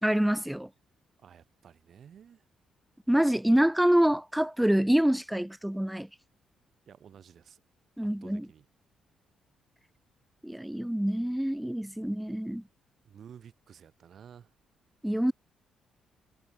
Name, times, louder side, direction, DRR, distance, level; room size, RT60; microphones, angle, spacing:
voice 1, 0.0-0.7 3.1-6.1 8.0-8.5 10.4-12.6 15.0-15.3, equal, 5° right, 0.4 m, -26 dB
voice 2, 1.2-2.4 6.9-7.6 8.2-8.7 13.0-14.5, right 8 dB, 60° right, 2.1 m, -52 dB
cardioid pair, 85°, 0 cm